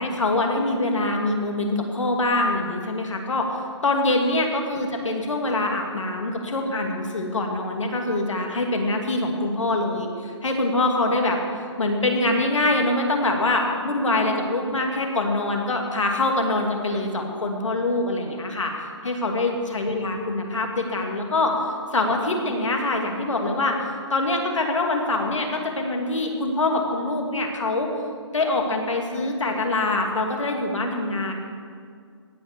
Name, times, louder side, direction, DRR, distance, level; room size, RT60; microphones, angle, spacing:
voice 1, 0.0-11.4 11.8-18.7 19.0-21.6 21.9-23.8 24.1-27.9 28.3-31.3, left 2 dB, 90° left, 2 dB, 2.4 m, -24 dB
17.0 x 5.8 x 6.7 m, 2.2 s
hypercardioid pair, 155°, 16 cm